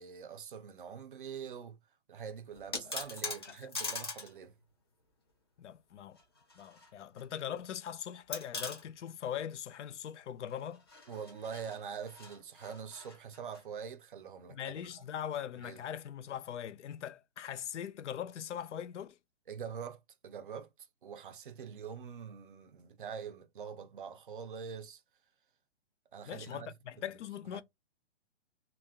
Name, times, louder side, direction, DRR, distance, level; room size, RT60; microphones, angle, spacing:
voice 1, 0.0-1.8 2.1-4.5 11.1-14.9 15.6-15.8 19.5-20.7 21.0-25.0 26.1-27.1 27.5-27.6, right 7 dB, 50° right, 0.4 m, -44 dB
sound 1, 2.5-4.3 4.6-4.7 6.2-6.9 7.2-7.3 8.3-8.8 10.7-13.6, left 3 dB, 20° left, 0.5 m, -42 dB
voice 2, 3.3-3.7 5.6-6.2 6.6-10.8 14.5-19.2 26.3-27.6, left 9 dB, 85° left, 0.5 m, -41 dB
2.3 x 2.1 x 3.4 m
hypercardioid pair, 175°, 35 cm